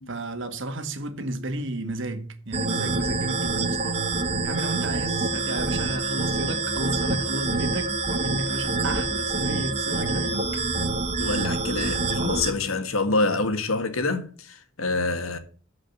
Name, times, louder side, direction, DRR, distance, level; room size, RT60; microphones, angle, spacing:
voice 1, 0.1-4.1 4.4-10.6, right 1 dB, 65° right, 1.7 m, -32 dB
sound 1, 2.5-12.5, right 3 dB, 30° right, 1.3 m, -26 dB
voice 2, 11.2-15.4, left 3 dB, 85° left, 1.7 m, -26 dB
14.0 x 5.1 x 6.7 m
head